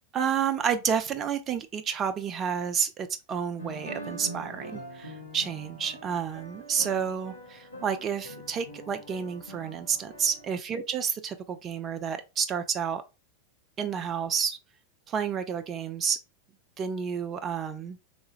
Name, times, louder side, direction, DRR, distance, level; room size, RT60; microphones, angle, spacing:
voice 1, 0.1-13.0 13.8-14.6 15.1-16.2 16.8-18.0, right 7 dB, 25° right, 0.3 m, -30 dB
sound 1, 3.6-10.5, right 1 dB, 85° left, 0.9 m, -43 dB
3.3 x 3.1 x 3.0 m
figure-of-eight pair, 90°, 0 cm